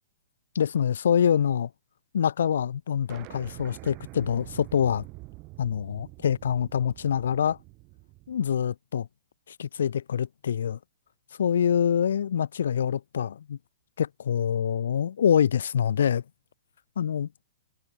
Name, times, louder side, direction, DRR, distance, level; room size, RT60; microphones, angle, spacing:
voice 1, 0.5-1.7 2.1-5.0 5.6-7.6 8.3-9.1 9.5-10.8 11.4-13.6 14.0-16.2 16.9-17.3, left 8 dB, 65° left, 3.4 m, -25 dB
sound 1, 3.1-8.4, right 24 dB, 35° right, 6.3 m, -46 dB
figure-of-eight pair, 115°, 0 cm